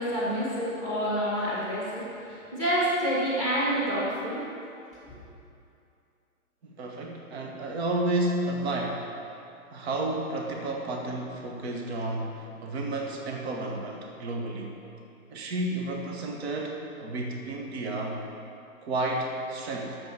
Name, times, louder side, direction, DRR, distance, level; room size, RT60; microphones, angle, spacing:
voice 1, 0.0-4.4 5.1-5.2, equal, 15° right, -7 dB, 2.4 m, -28 dB
voice 2, 6.6-9.1 9.7-14.8 15.3-18.2 18.8-20.0, right 2 dB, 45° right, 1 dB, 1.3 m, -31 dB
9.0 x 7.1 x 6.7 m, 2.6 s
hypercardioid pair, 150°, 43 cm